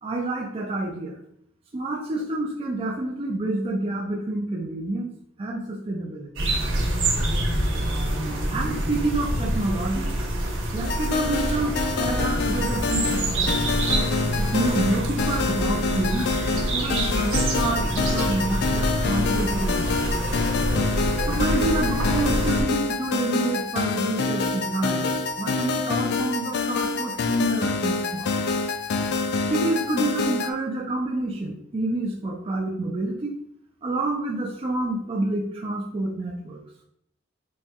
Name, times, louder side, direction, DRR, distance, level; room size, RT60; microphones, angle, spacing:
voice 1, 0.0-1.2 1.7-5.1 5.4-6.3 8.5-10.2 10.7-13.8 14.4-16.3 16.7-20.2 21.2-28.5 29.5-33.3 33.8-36.6, right 2 dB, 30° right, -1 dB, 0.4 m, -28 dB
sound 1, 6.4-22.6, right 1 dB, 90° right, 0.9 m, -26 dB
sound 2, 10.8-30.5, left 4 dB, 60° left, 0.3 m, -27 dB
4.1 x 2.2 x 3.5 m, 0.71 s
head